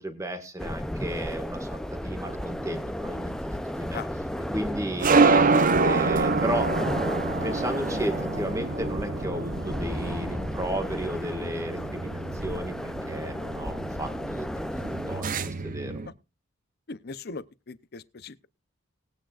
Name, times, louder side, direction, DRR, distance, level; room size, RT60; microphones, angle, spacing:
voice 1, 0.0-4.0 4.5-5.4 5.8-6.7 7.1-15.9, right 1 dB, 15° right, 1.6 m, -34 dB
sound 1, 0.6-15.2, equal, 5° left, 0.5 m, -34 dB
sound 2, 2.0-16.1, right 3 dB, 40° right, 0.7 m, -27 dB
voice 2, 16.9-18.5, left 4 dB, 50° left, 0.6 m, -39 dB
20.0 x 8.9 x 2.4 m
head